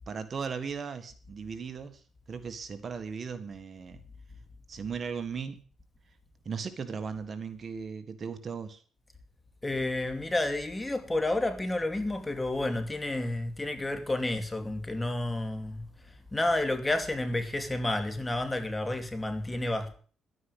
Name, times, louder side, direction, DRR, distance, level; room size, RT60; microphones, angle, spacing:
voice 1, 0.1-2.0 2.3-4.0 4.7-5.6 6.4-8.8, right 6 dB, 45° right, 1.7 m, -37 dB
voice 2, 9.6-15.9 16.3-19.9, left 2 dB, 15° left, 2.6 m, -30 dB
11.5 x 9.7 x 8.2 m
cardioid pair, 90°, 0 cm